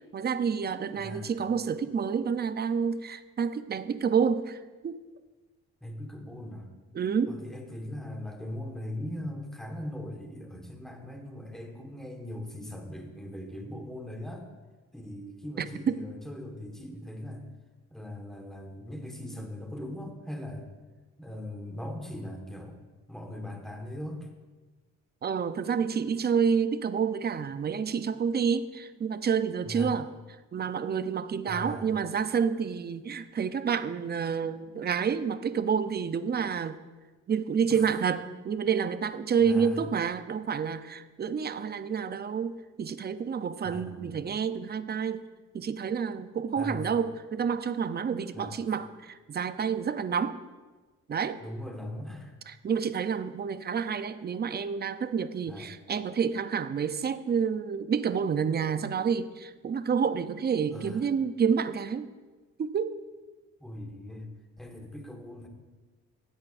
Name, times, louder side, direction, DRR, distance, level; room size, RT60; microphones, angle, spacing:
voice 1, 0.1-5.0 6.9-7.3 15.6-16.0 25.2-30.1 30.5-36.8 37.3-45.2 45.5-50.4 51.1-51.4 52.5-62.1 62.6-63.0, right 6 dB, 35° right, 12 dB, 0.5 m, -29 dB
voice 2, 0.9-1.3 5.8-6.7 7.3-14.5 14.9-17.4 17.9-20.7 21.2-22.8 23.1-24.3 29.6-29.9 31.5-31.9 37.7-37.9 39.4-39.9 43.6-44.1 46.6-46.9 48.3-48.6 51.4-52.4 55.5-55.7 60.7-61.1 63.6-64.3 64.6-65.5, left 1 dB, ahead, 2 dB, 1.5 m, -40 dB
15.5 x 8.1 x 2.6 m, 1.3 s
cardioid pair, 90°, 30 cm